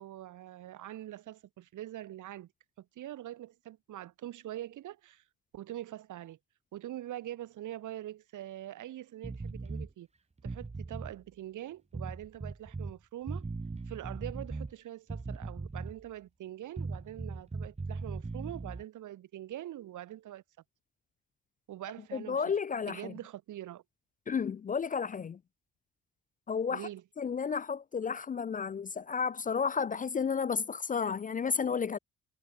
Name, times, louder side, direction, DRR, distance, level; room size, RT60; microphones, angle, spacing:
voice 1, 0.0-2.5 2.8-5.2 5.5-6.4 6.7-10.1 10.4-13.4 13.9-20.4 21.7-22.5 22.9-23.8 26.7-27.0, right 13 dB, 80° right, 6.8 m, -44 dB
sound 1, 9.2-9.9 10.4-11.2 11.9-12.9 13.3-14.7 15.1-16.1 16.8-18.8, right 3 dB, 20° right, 2.4 m, -39 dB
voice 2, 22.1-23.1 24.3-25.4 26.5-26.9 27.2-32.0, left 6 dB, 30° left, 0.4 m, -32 dB
cardioid pair, 90°, 30 cm